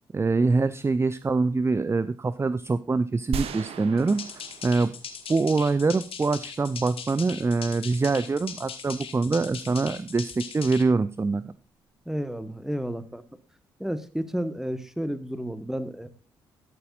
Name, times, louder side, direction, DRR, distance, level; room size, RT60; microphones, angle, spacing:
voice 1, 0.1-4.2 4.6-4.9 5.3-11.5, right 3 dB, 25° right, 16 dB, 0.5 m, -24 dB
sound 1, 3.3-5.6, right 7 dB, 65° right, 1.1 m, -36 dB
sound 2, 4.0-10.8, left 7 dB, 55° left, 1.8 m, -40 dB
voice 2, 12.1-13.2 13.8-16.1, equal, 5° right, 12 dB, 1.4 m, -31 dB
12.5 x 10.5 x 2.4 m, 0.35 s
hypercardioid pair, 40°, 11 cm